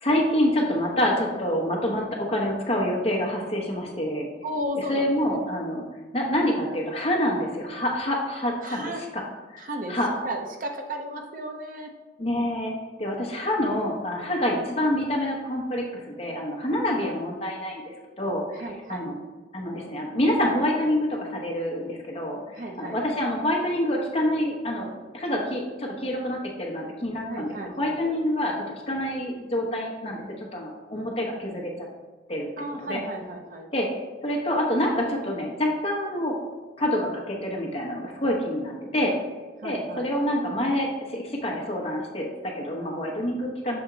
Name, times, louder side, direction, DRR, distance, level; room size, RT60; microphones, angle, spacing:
voice 1, 0.0-4.3 4.9-5.8 6.1-9.2 9.5-10.1 12.2-12.7 13.0-18.4 18.9-19.2 19.5-24.9 25.1-28.5 28.9-31.9 32.3-32.5 32.8-33.0 33.7-36.4 36.8-39.1 39.6-43.8, left 1 dB, 35° left, -1 dB, 0.9 m, -27 dB
voice 2, 4.4-5.4 8.6-9.1 9.6-10.0 10.2-11.9 18.5-19.1 22.5-23.0 27.3-28.2 32.6-33.7 39.6-40.1, right 1 dB, 45° right, 3 dB, 0.6 m, -34 dB
6.9 x 3.5 x 3.9 m, 1.4 s
head